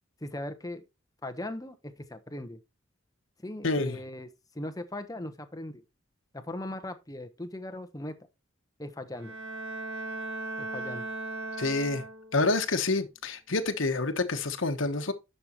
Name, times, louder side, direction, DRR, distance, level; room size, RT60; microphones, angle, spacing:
voice 1, 0.2-0.8 1.2-2.6 3.4-4.3 4.5-5.8 6.3-8.2 8.8-9.3 10.6-11.0, left 1 dB, 20° left, 1.0 m, -39 dB
voice 2, 3.6-4.0 11.6-12.0 12.3-15.1, left 3 dB, 80° left, 1.2 m, -28 dB
Bowed string instrument, 9.1-12.5, right 2 dB, 75° right, 1.5 m, -37 dB
11.0 x 6.7 x 3.0 m
head